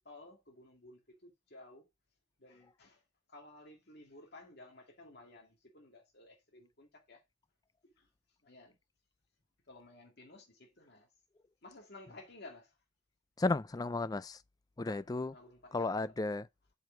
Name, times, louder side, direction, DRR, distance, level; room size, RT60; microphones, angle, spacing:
voice 1, 0.0-1.9 2.4-3.0 3.3-7.2 7.8-8.1 8.4-8.7 9.7-11.1 11.6-12.7 14.8-15.0 15.3-16.0, left 2 dB, 55° left, 2.1 m, -55 dB
voice 2, 13.4-14.4 14.8-15.3 15.7-16.5, left 3 dB, 20° left, 0.4 m, -34 dB
7.7 x 5.1 x 4.9 m
head